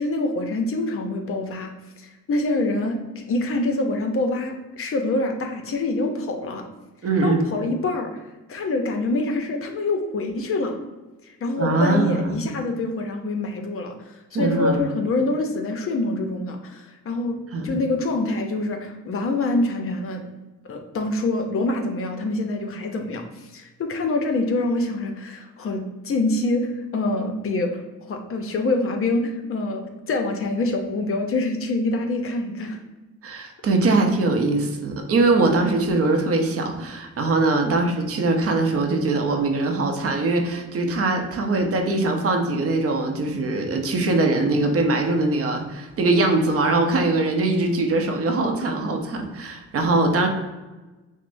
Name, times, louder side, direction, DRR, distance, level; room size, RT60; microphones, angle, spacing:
voice 1, 0.0-1.7 2.0-6.6 7.2-8.1 8.5-10.8 11.2-20.2 20.7-32.8 37.6-37.8, left 2 dB, 45° left, 4 dB, 0.6 m, -26 dB
voice 2, 7.0-7.5 11.6-12.5 14.3-14.8 17.5-17.8 33.2-50.3, right 2 dB, 50° right, 4 dB, 0.7 m, -22 dB
6.1 x 2.0 x 2.6 m, 1.1 s
cardioid pair, 90°, 30 cm